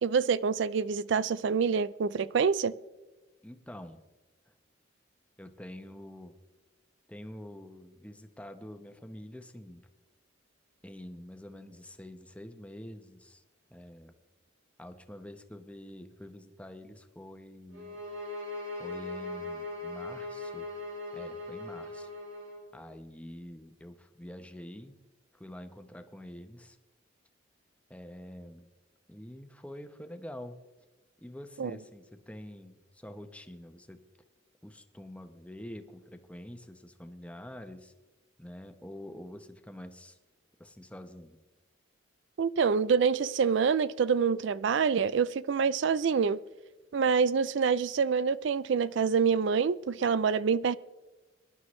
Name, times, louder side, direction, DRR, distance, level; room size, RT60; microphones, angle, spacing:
voice 1, 0.0-2.7 31.6-31.7 42.4-46.4 46.9-50.8, right 6 dB, 65° right, 0.4 m, -26 dB
voice 2, 3.4-4.0 5.4-6.3 7.1-9.8 10.8-13.4 13.7-14.1 14.8-18.0 18.8-20.7 21.1-22.1 22.7-25.0 25.3-26.8 27.9-28.7 29.1-30.6 31.2-34.0 34.6-37.9 38.4-40.2 40.6-41.4, left 1 dB, 5° left, 0.9 m, -46 dB
sound 1, 17.7-22.6, left 2 dB, 80° right, 4.3 m, -39 dB
23.5 x 11.5 x 3.2 m
head